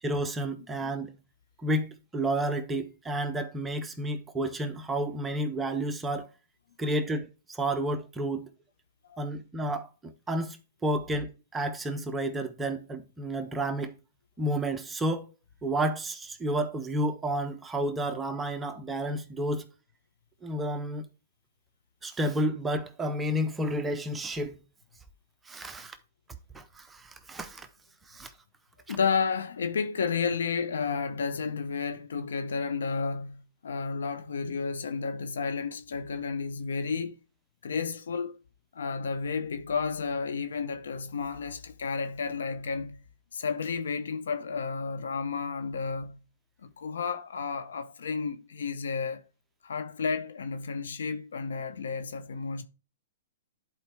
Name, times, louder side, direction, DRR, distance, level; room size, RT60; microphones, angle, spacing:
voice 1, 0.0-1.1 1.6-6.3 6.8-8.5 9.2-10.6 10.8-13.9 14.4-15.3 15.6-19.7 20.4-21.0 22.0-24.6 25.5-26.0 26.5-27.7 28.1-28.3 28.9-29.0, right 1 dB, 10° right, 0.7 m, -31 dB
voice 2, 28.9-37.1 37.6-38.4 38.7-43.0 43.3-46.2 46.6-49.2 49.6-52.6, left 5 dB, 80° left, 0.8 m, -32 dB
10.5 x 4.4 x 3.4 m
hypercardioid pair, 135°, 0 cm